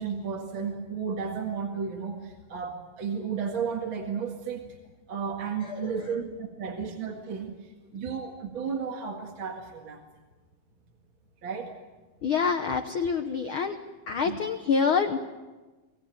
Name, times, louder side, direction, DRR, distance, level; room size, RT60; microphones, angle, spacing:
voice 1, 0.0-4.6 5.1-7.5 7.9-10.0 11.4-11.7 14.3-14.4, right 6 dB, 40° right, 1 dB, 2.3 m, -33 dB
voice 2, 12.2-13.8 14.1-15.2, left 5 dB, 85° left, 7 dB, 1.1 m, -26 dB
25.0 x 17.5 x 9.1 m, 1.2 s
omnidirectional pair, 3.8 m